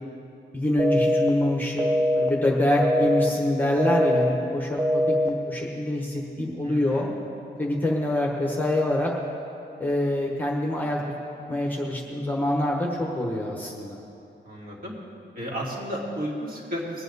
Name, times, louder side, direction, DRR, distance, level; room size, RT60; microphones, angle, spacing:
voice 1, 0.5-7.1 7.6-9.1 9.8-11.0 11.5-14.0, left 1 dB, 10° left, -2 dB, 1.1 m, -25 dB
sound 1, 0.8-1.3 1.8-2.3 2.8-3.3 3.8-4.3 4.8-5.3, equal, 15° right, 0.7 m, -22 dB
voice 2, 6.6-7.1 14.4-14.9 15.3-17.0, equal, 45° right, -4 dB, 2.7 m, -33 dB
20.5 x 9.1 x 4.1 m, 2.7 s
wide cardioid pair, 170°, 20 cm